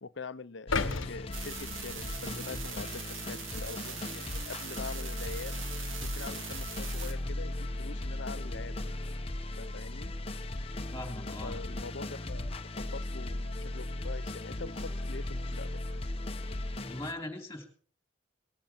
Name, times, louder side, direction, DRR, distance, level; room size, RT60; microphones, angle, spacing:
voice 1, 0.0-5.6 6.0-8.8 9.6-10.1 11.4-15.7, left 4 dB, 65° left, 15 dB, 0.7 m, -44 dB
sound 1, 0.7-2.9 3.4-3.5, left 4 dB, 90° left, 1.1 m, -36 dB
sound 2, 0.7-17.1, left 1 dB, 30° left, 1.0 m, -37 dB
sound 3, 1.3-7.1, right 7 dB, 90° right, 1.8 m, -42 dB
voice 2, 10.9-11.6 16.8-17.6, left 1 dB, 15° left, 4 dB, 3.5 m, -40 dB
20.5 x 13.0 x 4.6 m, 0.42 s
head